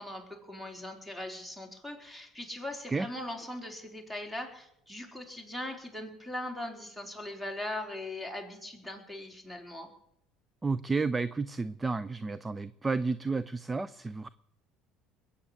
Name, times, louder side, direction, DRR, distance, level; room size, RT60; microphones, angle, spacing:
voice 1, 0.0-9.9, left 1 dB, 5° right, 4 dB, 4.4 m, -40 dB
voice 2, 10.6-14.3, right 4 dB, 20° right, 16 dB, 0.6 m, -31 dB
21.5 x 8.5 x 7.8 m, 0.74 s
hypercardioid pair, 75°, 0 cm